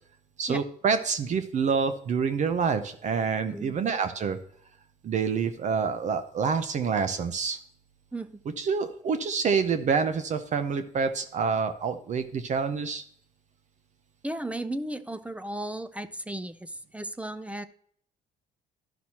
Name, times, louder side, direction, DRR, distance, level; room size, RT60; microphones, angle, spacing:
voice 1, 0.4-4.4 5.0-7.6 8.6-13.0, right 5 dB, 45° right, 10 dB, 0.6 m, -27 dB
voice 2, 14.2-17.7, right 1 dB, 10° right, 12 dB, 0.4 m, -35 dB
12.0 x 5.9 x 2.9 m, 0.62 s
cardioid pair, 110°, 17 cm